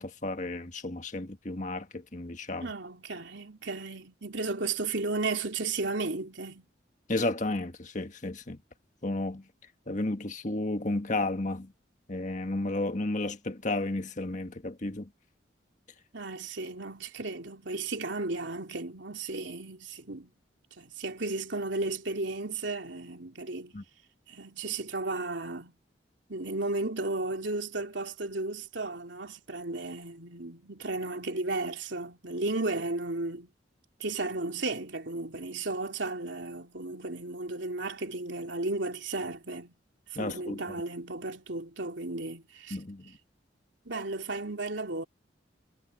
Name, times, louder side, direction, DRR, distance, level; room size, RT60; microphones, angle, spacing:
voice 1, 0.0-2.7 7.1-8.6 9.0-9.4 9.9-11.7 12.1-15.1 23.7-23.8 40.1-40.6 42.7-43.1, left 2 dB, 40° left, 1.6 m, -32 dB
voice 2, 2.6-6.7 16.1-20.3 20.8-23.8 24.3-25.7 26.3-33.5 34.0-39.7 40.1-42.8 43.8-45.0, right 3 dB, 75° right, 3.2 m, -34 dB
head